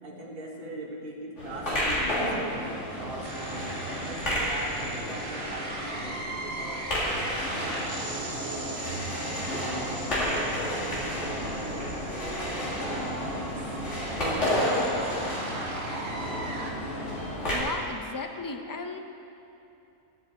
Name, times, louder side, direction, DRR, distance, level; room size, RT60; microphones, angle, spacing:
voice 1, 0.0-6.8 7.6-8.0 8.4-13.8 14.2-15.3, right 1 dB, 45° right, -2 dB, 1.7 m, -41 dB
sound 1, 1.4-17.6, equal, 60° left, 3.1 m, -31 dB
sound 2, 3.2-16.7, right 2 dB, 70° right, 2.0 m, -39 dB
voice 2, 17.5-19.0, left 3 dB, 25° left, 6 dB, 0.4 m, -35 dB
22.0 x 7.4 x 4.3 m, 2.8 s
omnidirectional pair, 1.4 m